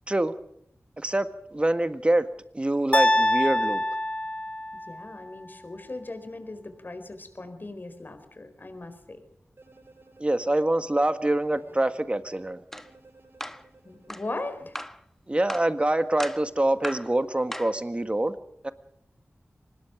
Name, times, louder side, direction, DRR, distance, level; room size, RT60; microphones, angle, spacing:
voice 1, 1.0-2.3 2.5-3.8 10.2-12.6 15.3-18.4 18.6-18.7, right 1 dB, 25° right, 9 dB, 1.8 m, -25 dB
sound 1, 2.9-5.1, left 1 dB, 25° left, 1.0 m, -24 dB
voice 2, 4.9-9.2 13.8-14.8, left 2 dB, 45° left, 9 dB, 4.6 m, -38 dB
sound 2, 9.6-12.0 12.7-14.6, right 3 dB, 55° right, 7.7 m, -56 dB
sound 3, 12.7-12.9 13.4-13.6 14.1-14.3 14.7-15.0 15.5-15.7 16.2-16.5 16.8-17.1 17.5-17.8, equal, 5° left, 1.2 m, -36 dB
24.5 x 20.5 x 5.1 m, 0.73 s
wide cardioid pair, 85°, 5 cm